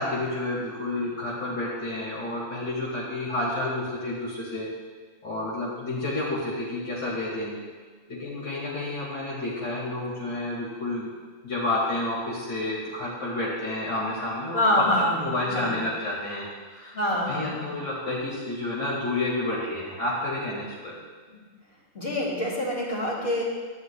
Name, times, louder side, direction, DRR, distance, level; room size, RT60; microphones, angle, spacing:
voice 1, 0.0-4.7 5.2-7.6 8.1-11.1 11.4-14.9 15.1-16.9 17.2-20.9, left 2 dB, 55° left, -6 dB, 2.6 m, -30 dB
voice 2, 14.5-15.2 15.5-15.8 16.9-17.7 21.3-21.4 21.9-23.4, left 1 dB, 30° left, -5 dB, 2.6 m, -26 dB
18.5 x 10.0 x 2.2 m, 1.5 s
omnidirectional pair, 2.3 m